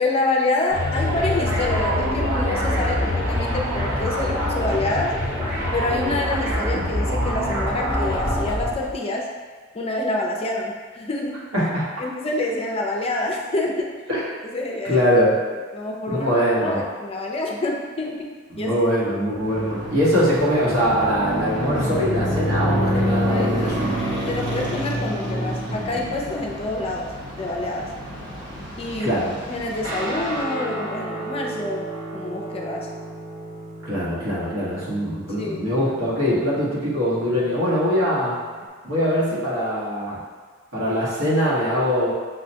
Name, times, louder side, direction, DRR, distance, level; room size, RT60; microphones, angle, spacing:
voice 1, 0.0-5.2 5.7-9.3 9.7-11.5 12.0-14.0 14.4-15.1 15.5-16.3 16.6-18.8 22.9-23.5 24.3-27.1 27.4-27.9 28.8-29.2 29.5-32.9 35.4-35.7, left 2 dB, 30° left, -1 dB, 0.4 m, -27 dB
sound 1, 0.7-8.9, equal, 65° right, 1.3 m, -24 dB
voice 2, 11.5-11.9 14.1-14.2 14.8-15.4 16.1-16.8 18.5-24.0 29.0-29.3 33.8-38.4 38.8-40.2 40.7-42.1, equal, 85° right, -8 dB, 1.4 m, -22 dB
sound 2, 19.4-30.4, equal, 20° right, 0.8 m, -27 dB
Guitar, 29.8-38.6, right 2 dB, 45° right, 1.0 m, -35 dB
5.9 x 2.1 x 2.8 m, 1.5 s
head